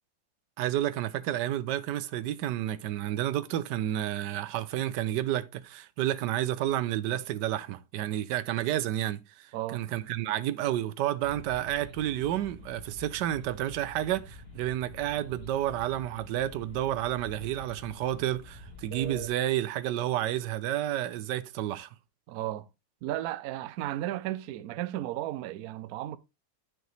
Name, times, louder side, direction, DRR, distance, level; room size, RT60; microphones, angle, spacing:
voice 1, 0.6-21.9, right 13 dB, 75° right, 1.1 m, -30 dB
voice 2, 9.5-9.8 22.3-22.7 23.0-26.2, right 14 dB, 90° right, 0.8 m, -34 dB
sound 1, 11.2-19.3, left 1 dB, 30° left, 3.1 m, -46 dB
9.1 x 6.0 x 3.2 m
omnidirectional pair, 2.2 m